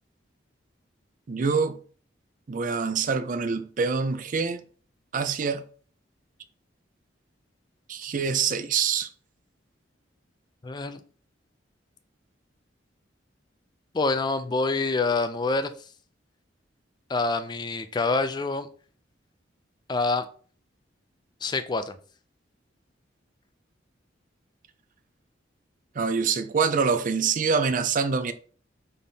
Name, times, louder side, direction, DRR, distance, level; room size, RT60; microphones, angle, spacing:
voice 1, 1.3-1.8 2.5-4.6 5.1-5.6 7.9-9.1 26.0-28.3, right 5 dB, 45° right, 0.4 m, -25 dB
voice 2, 10.6-11.0 13.9-15.7 17.1-18.7 19.9-20.3 21.4-22.0, left 3 dB, 25° left, 0.4 m, -26 dB
4.2 x 3.5 x 3.4 m
head